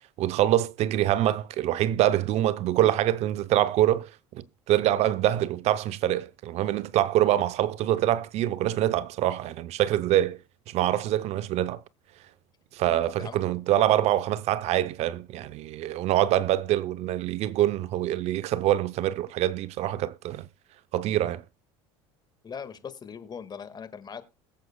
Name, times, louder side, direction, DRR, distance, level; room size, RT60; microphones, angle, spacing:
voice 1, 0.2-10.4 10.7-11.8 12.7-20.5 20.9-21.4, right 13 dB, 55° right, 0.6 m, -25 dB
voice 2, 22.4-24.2, left 6 dB, 30° left, 1.7 m, -40 dB
21.5 x 7.7 x 2.2 m
hypercardioid pair, 80°, 13 cm